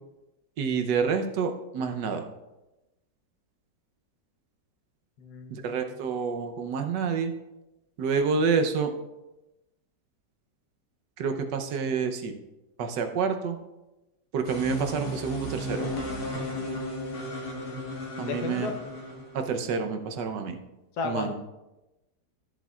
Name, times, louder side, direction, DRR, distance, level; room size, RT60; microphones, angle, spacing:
voice 1, 0.6-2.3 5.5-7.3 8.0-8.9 11.2-12.3 12.8-13.6 14.3-15.9 18.2-18.7 19.3-20.6 21.0-21.3, right 5 dB, 85° right, 6 dB, 1.5 m, -28 dB
voice 2, 5.2-5.8 18.2-18.7 21.0-21.3, left 5 dB, 70° left, 4 dB, 1.4 m, -33 dB
sound 1, 14.4-19.8, left 1 dB, 50° left, 1.5 m, -35 dB
13.5 x 7.4 x 2.4 m, 1.0 s
omnidirectional pair, 1.8 m